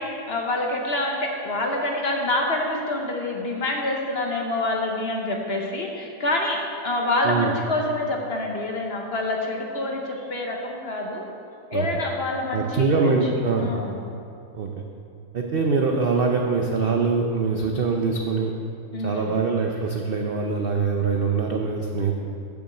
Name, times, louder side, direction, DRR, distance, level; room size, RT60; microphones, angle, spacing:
voice 1, 0.0-6.6 6.8-11.2 11.7-13.2 13.6-13.9 18.9-19.3, left 2 dB, 45° left, 0 dB, 0.9 m, -26 dB
voice 2, 12.5-13.7 14.5-14.7 15.3-18.5 19.0-22.3, right 4 dB, 70° right, 1 dB, 0.5 m, -23 dB
7.0 x 6.1 x 7.6 m, 2.7 s
omnidirectional pair, 1.8 m